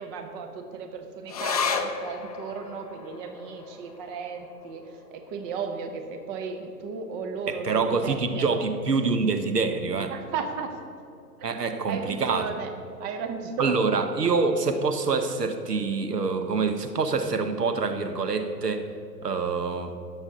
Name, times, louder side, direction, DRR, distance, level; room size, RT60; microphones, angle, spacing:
voice 1, 0.0-8.6 10.1-10.7 11.9-12.7 13.0-14.0, right 5 dB, 25° right, 5 dB, 0.9 m, -35 dB
sound 1, 1.3-8.1 8.4-8.5 8.8-9.5 10.0-10.1, left 5 dB, 25° left, 0.4 m, -35 dB
voice 2, 7.5-10.1 11.4-12.5 13.6-18.9 19.2-20.0, right 4 dB, 80° right, 7 dB, 1.0 m, -26 dB
18.0 x 7.1 x 3.9 m, 2.5 s
figure-of-eight pair, 115°, 47 cm